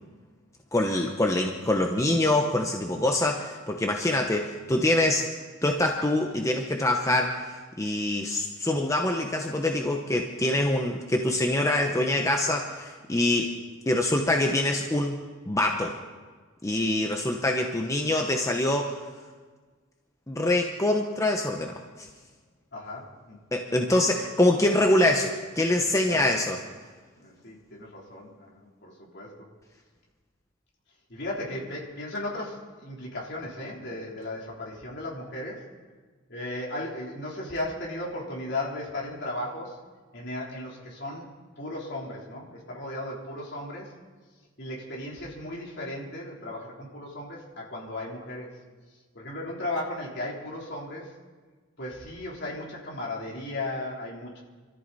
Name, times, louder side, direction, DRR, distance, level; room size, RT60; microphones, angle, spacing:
voice 1, 0.7-5.3 5.6-13.5 13.9-15.2 15.5-16.0 16.6-19.0 20.3-22.1 23.5-26.6, left 1 dB, 15° left, 2 dB, 0.9 m, -25 dB
voice 2, 22.7-23.4 26.1-26.4 27.2-29.5 31.1-35.7 36.3-39.8 40.1-41.3 41.6-44.0 44.6-48.6 49.1-51.1 51.8-54.4, left 1 dB, 60° left, -3 dB, 3.6 m, -36 dB
25.5 x 14.0 x 4.1 m, 1.4 s
head